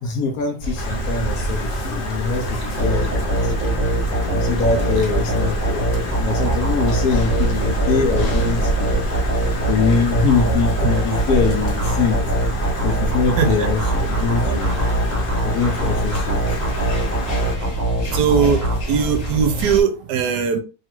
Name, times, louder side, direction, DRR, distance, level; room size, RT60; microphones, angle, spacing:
voice 1, 0.0-3.5 4.2-5.9 6.2-8.9 9.7-12.2 12.8-14.7 15.4-16.4, left 5 dB, 70° left, 0.9 m, -23 dB
sound 1, 0.6-19.8, right 1 dB, 50° left, 1.2 m, -27 dB
Stream, 0.8-17.6, left 1 dB, 90° left, 0.4 m, -30 dB
sound 2, 2.8-19.4, right 1 dB, 20° right, 0.4 m, -23 dB
voice 2, 18.1-18.6 18.9-20.6, right 6 dB, 75° right, 1.1 m, -19 dB
3.2 x 2.3 x 2.9 m
omnidirectional pair, 1.9 m